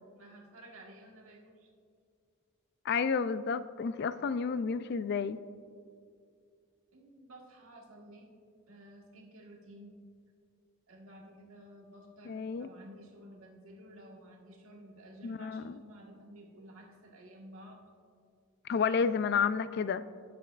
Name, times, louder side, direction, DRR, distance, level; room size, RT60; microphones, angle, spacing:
voice 1, 0.1-1.7 6.9-8.3 8.7-10.0 10.9-17.8, right 1 dB, 80° right, 0 dB, 1.5 m, -53 dB
voice 2, 2.8-5.4 12.3-12.7 15.2-15.7 18.7-20.0, left 5 dB, 50° left, 14 dB, 0.3 m, -31 dB
18.0 x 7.7 x 2.4 m, 2.2 s
head